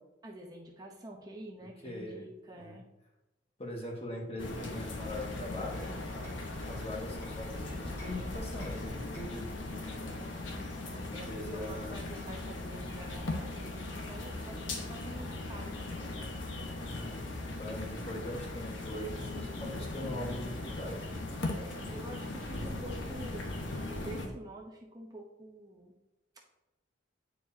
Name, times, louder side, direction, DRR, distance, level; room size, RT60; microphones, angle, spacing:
voice 1, 0.2-2.9 10.0-16.0 21.5-26.0 26.3-26.5, right 1 dB, 20° right, -1 dB, 0.7 m, -48 dB
voice 2, 1.8-2.3 2.6-2.8 3.6-5.9 6.6-9.5 10.9-12.1 16.7-21.2, left 1 dB, 30° left, 0 dB, 1.3 m, -41 dB
sound 1, 4.4-24.3, left 2 dB, 85° left, 1.1 m, -39 dB
Hammer, 5.7-7.5 8.0-9.5, right 1 dB, 15° left, 1.4 m, -57 dB
9.0 x 4.7 x 2.7 m, 1.0 s
head